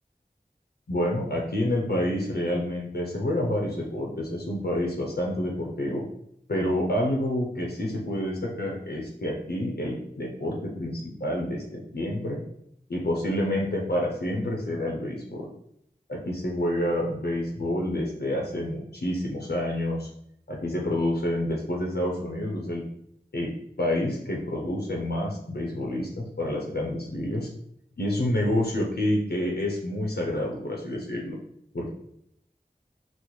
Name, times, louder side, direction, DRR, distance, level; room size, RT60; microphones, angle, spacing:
voice 1, 0.9-6.0 6.5-12.4 12.9-15.5 16.1-20.1 20.5-22.8 23.3-23.5 23.8-27.5 28.0-31.4 31.7-31.9, left 1 dB, 80° left, -1 dB, 0.7 m, -28 dB
4.1 x 2.0 x 3.1 m, 0.71 s
wide cardioid pair, 45°, 17 cm